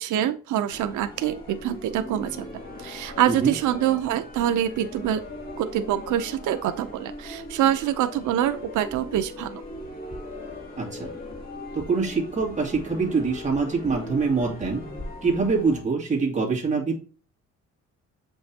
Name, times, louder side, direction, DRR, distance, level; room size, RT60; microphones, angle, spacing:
voice 1, 0.0-5.2 5.6-9.6, right 11 dB, 90° right, 10 dB, 0.6 m, -25 dB
sound 1, 0.7-15.8, left 1 dB, 30° left, 2.6 m, -39 dB
voice 2, 10.8-11.1 11.7-14.8 15.2-17.0, right 4 dB, 25° right, -3 dB, 2.4 m, -24 dB
7.9 x 5.4 x 2.8 m, 0.38 s
cardioid pair, 130°, 29 cm